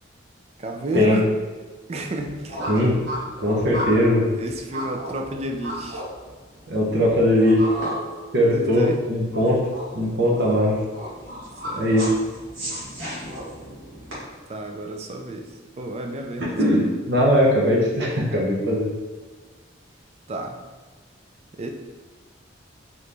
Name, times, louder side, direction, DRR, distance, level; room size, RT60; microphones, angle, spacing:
voice 1, 0.6-1.3 1.9-2.6 4.3-6.0 8.5-9.0 11.6-11.9 14.5-15.5 15.8-16.9 20.3-20.6 21.5-21.7, right 1 dB, 30° right, 3 dB, 0.3 m, -31 dB
sound 1, 2.0-14.1, equal, 75° right, 1.5 m, -34 dB
voice 2, 2.7-3.0 3.4-4.3 6.7-7.7 8.3-9.7 9.9-10.8 11.8-12.1 16.4-18.9, equal, 55° right, -3 dB, 0.8 m, -20 dB
3.8 x 3.0 x 3.4 m, 1.3 s
head